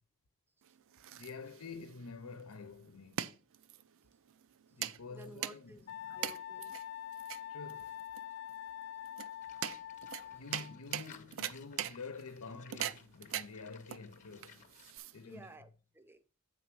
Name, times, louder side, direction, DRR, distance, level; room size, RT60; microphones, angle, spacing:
sound 1, 0.6-15.5, right 10 dB, 65° right, 0.5 m, -43 dB
voice 1, 1.1-3.3 4.7-6.3 7.5-8.0 10.3-14.7 15.1-15.5, left 4 dB, 85° left, 0.8 m, -48 dB
voice 2, 5.1-6.7 15.3-16.2, right 1 dB, 10° right, 0.6 m, -54 dB
Wind instrument woodwind instrument, 5.9-10.9, left 10 dB, 55° left, 0.3 m, -45 dB
Livestock farm animals working animals, 9.4-15.0, left 7 dB, 35° left, 0.9 m, -59 dB
8.3 x 4.0 x 6.0 m
head